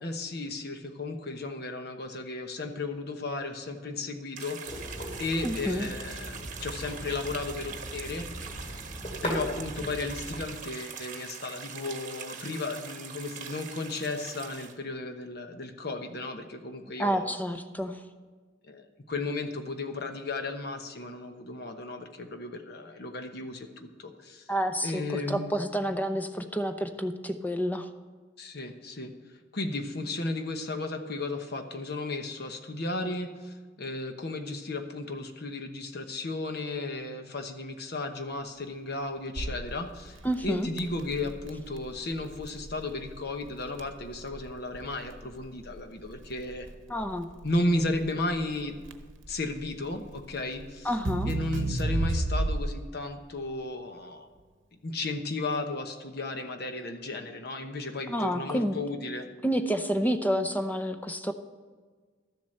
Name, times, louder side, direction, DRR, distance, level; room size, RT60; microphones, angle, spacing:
voice 1, 0.0-4.9 5.2-8.3 8.6-8.8 9.2-17.3 18.7-24.5 24.8-25.5 28.4-29.1 29.5-40.2 40.4-46.7 47.4-48.7 49.3-50.9 51.3-54.3 54.8-59.3, left 2 dB, 60° left, 6 dB, 1.1 m, -34 dB
sound 1, 4.4-14.7, right 7 dB, 45° right, 1.2 m, -42 dB
sound 2, 4.7-10.5, equal, 35° left, 2.5 m, -39 dB
voice 2, 5.4-5.9 17.0-18.0 24.5-27.9 40.2-40.7 46.9-47.3 50.8-51.3 58.1-58.8 59.4-61.3, equal, 10° left, 7 dB, 0.7 m, -29 dB
Crackle, 39.4-52.9, right 2 dB, 85° right, 0.8 m, -34 dB
12.5 x 7.6 x 6.5 m, 1.5 s
head